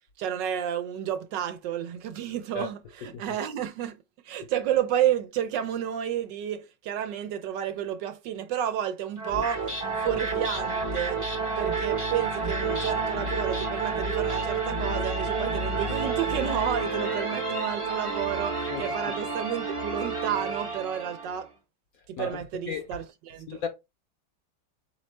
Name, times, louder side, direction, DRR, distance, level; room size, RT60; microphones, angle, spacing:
voice 1, 0.2-4.0 4.2-9.7 10.0-11.2 11.6-21.5 22.1-23.6, right 10 dB, 75° right, 1.2 m, -31 dB
sound 1, 9.2-21.4, right 4 dB, 25° right, 0.6 m, -30 dB
voice 2, 22.2-23.0 23.5-23.7, left 6 dB, 65° left, 0.9 m, -35 dB
4.1 x 3.1 x 3.1 m
omnidirectional pair, 2.1 m